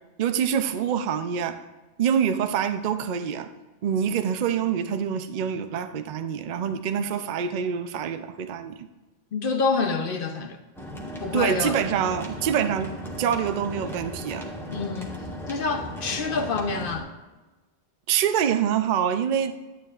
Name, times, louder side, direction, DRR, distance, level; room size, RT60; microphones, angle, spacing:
voice 1, 0.2-1.6 2.0-3.5 3.8-8.9 11.3-14.5 18.1-19.6, right 8 dB, 55° right, 10 dB, 0.6 m, -26 dB
voice 2, 9.3-10.6 11.2-11.8 14.7-15.1 15.5-17.1, left 4 dB, 60° left, 6 dB, 0.8 m, -27 dB
sound 1, 10.8-17.0, equal, ahead, 1.3 m, -36 dB
11.5 x 9.2 x 2.4 m, 1.2 s
omnidirectional pair, 1.1 m